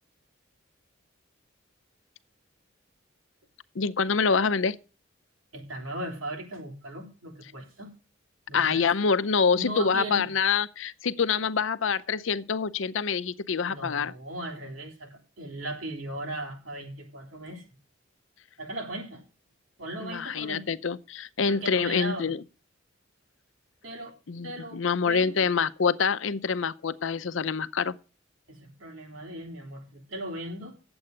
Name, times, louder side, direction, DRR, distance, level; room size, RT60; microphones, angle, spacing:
voice 1, 3.7-4.8 8.5-14.1 20.0-22.4 24.3-28.0, left 5 dB, 75° left, 0.6 m, -26 dB
voice 2, 5.5-7.9 8.5-8.9 9.6-10.3 13.7-17.7 18.6-19.2 19.8-20.8 21.5-22.3 23.8-24.2 24.4-25.5 28.5-30.8, right 1 dB, 85° right, 3.8 m, -38 dB
9.8 x 7.9 x 7.6 m
head